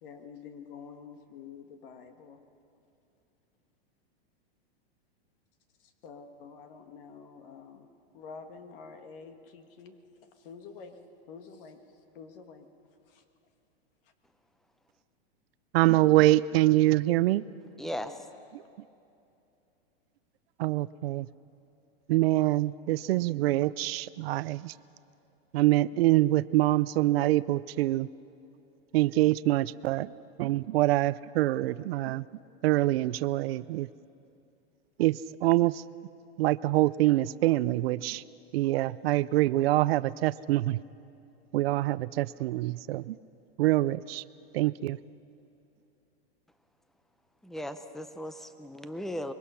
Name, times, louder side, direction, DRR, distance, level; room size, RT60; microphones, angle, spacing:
voice 1, 0.0-2.4 5.8-7.9 8.1-10.0 10.2-11.0 11.3-11.8 12.1-12.7 13.1-13.2 18.0-18.2, left 5 dB, 60° left, 7 dB, 1.7 m, -48 dB
voice 2, 15.7-17.4 20.6-21.3 22.1-24.7 25.5-28.1 28.9-30.1 30.4-32.2 32.6-33.9 35.0-35.8 36.4-38.2 38.5-40.8 41.5-43.2 43.6-44.2 44.5-45.0, right 16 dB, 70° right, 16 dB, 0.5 m, -25 dB
voice 3, 17.8-18.1 47.4-49.3, equal, ahead, 10 dB, 0.5 m, -37 dB
25.0 x 22.0 x 5.7 m, 2.7 s
supercardioid pair, 150°, 32 cm